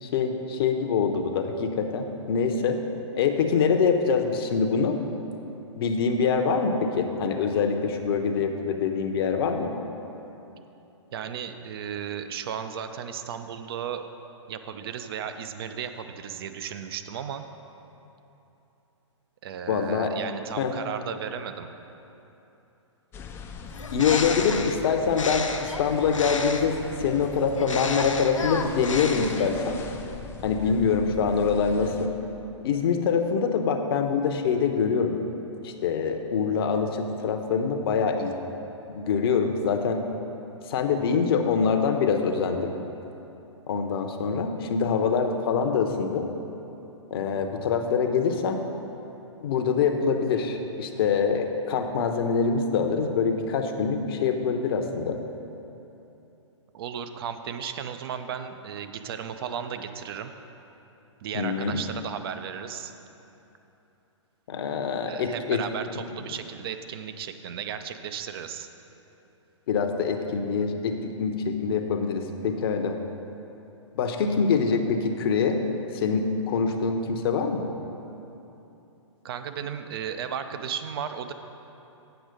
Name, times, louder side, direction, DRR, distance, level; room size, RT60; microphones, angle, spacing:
voice 1, 0.0-2.8 3.1-5.0 5.8-9.7 19.7-20.1 20.6-20.7 23.9-29.8 30.4-32.1 32.6-35.2 35.6-38.3 38.9-40.0 40.7-42.7 43.7-46.3 47.1-48.6 49.4-55.2 61.3-61.8 64.5-65.6 69.7-73.0 74.0-75.6 75.9-77.7, left 5 dB, 50° left, 5 dB, 0.7 m, -25 dB
voice 2, 11.1-14.0 14.5-17.4 19.4-21.7 56.7-60.3 61.2-62.9 65.0-68.7 79.2-81.3, right 8 dB, 50° right, 8 dB, 0.5 m, -35 dB
sound 1, 23.1-32.1, left 4 dB, 15° left, 0.4 m, -41 dB
Bird, 23.7-26.8 27.5-29.7, left 4 dB, 85° left, 0.6 m, -32 dB
8.0 x 6.1 x 5.1 m, 3.0 s
figure-of-eight pair, 120°, 16 cm